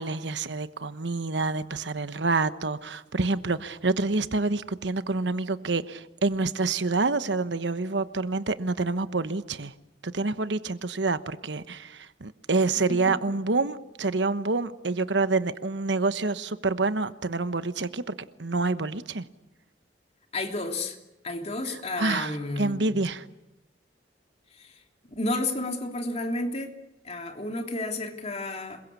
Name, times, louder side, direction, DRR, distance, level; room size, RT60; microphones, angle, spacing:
voice 1, 0.0-9.7 10.0-18.1 18.4-19.2 22.0-23.2, right 3 dB, 80° right, 1.2 m, -27 dB
voice 2, 20.3-21.0 21.2-23.0 24.6-24.7 25.2-26.7 27.0-28.8, left 2 dB, 40° left, 3.1 m, -31 dB
27.0 x 22.5 x 8.5 m
head